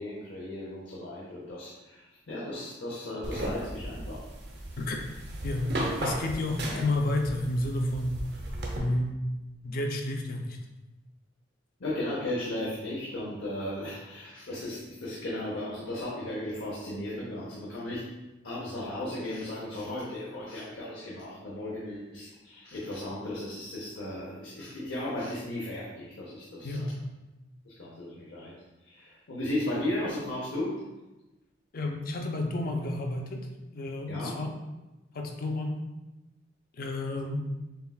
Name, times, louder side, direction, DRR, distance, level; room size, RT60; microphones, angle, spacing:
voice 1, 0.0-4.2 6.7-6.9 11.8-18.1 18.4-26.9 27.6-28.5 28.8-30.8 34.1-34.4, left 1 dB, 85° left, -5 dB, 0.8 m, -35 dB
sound 1, 3.2-8.8, right 1 dB, 60° right, 0.7 m, -36 dB
voice 2, 4.8-5.1 5.4-8.2 8.8-9.2 9.6-10.6 26.6-26.9 31.7-33.5 33.7-34.5 35.1-35.8 36.7-37.4, left 1 dB, 50° left, 2 dB, 0.5 m, -31 dB
6.8 x 2.3 x 2.3 m, 1.0 s
head